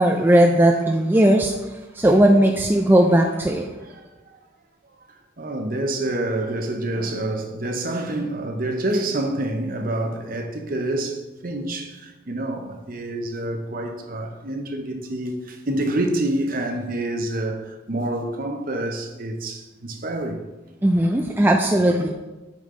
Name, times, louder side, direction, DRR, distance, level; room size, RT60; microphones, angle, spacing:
voice 1, 0.0-1.6 1.9-3.7 20.8-22.1, right 1 dB, 10° right, 0.3 m, -17 dB
voice 2, 5.4-20.4, right 1 dB, 45° right, 0.8 m, -27 dB
8.5 x 5.3 x 3.8 m
head